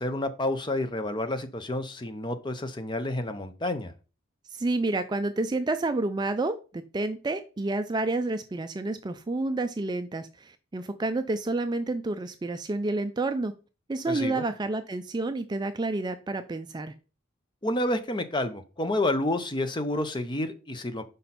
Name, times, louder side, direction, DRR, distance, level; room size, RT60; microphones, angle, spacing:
voice 1, 0.0-3.9 14.1-14.4 17.6-21.0, left 1 dB, 20° left, 9 dB, 0.6 m, -29 dB
voice 2, 4.5-13.5 13.9-16.9, right 2 dB, 20° right, 9 dB, 0.3 m, -29 dB
5.6 x 5.3 x 4.2 m, 0.34 s
head